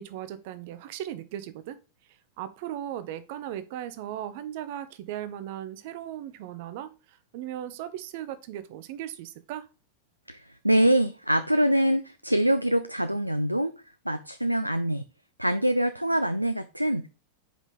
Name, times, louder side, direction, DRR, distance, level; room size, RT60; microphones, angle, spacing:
voice 1, 0.0-1.8 2.4-9.7, right 11 dB, 50° right, 0.7 m, -37 dB
voice 2, 10.3-13.7 14.1-15.0 15.4-17.1, right 1 dB, 90° right, 0.4 m, -24 dB
5.2 x 5.0 x 3.7 m
figure-of-eight pair, 90°, 0 cm